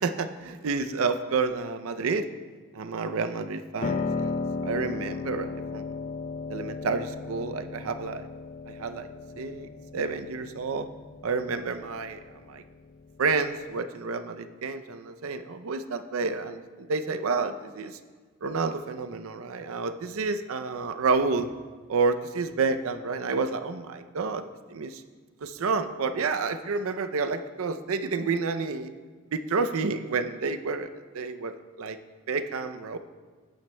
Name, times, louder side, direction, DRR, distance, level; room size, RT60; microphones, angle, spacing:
voice 1, 0.0-2.3 2.7-4.3 4.6-5.9 6.5-8.3 8.7-9.1 9.4-10.9 11.2-12.6 13.2-18.0 18.4-21.5 21.9-24.4 24.7-25.0 25.4-28.9 29.3-30.9 31.1-32.0 32.3-33.0, right 4 dB, 80° right, 9 dB, 0.5 m, -29 dB
Piano, 3.8-13.8, left 4 dB, 35° left, 0.3 m, -35 dB
13.0 x 8.9 x 2.2 m, 1.5 s
head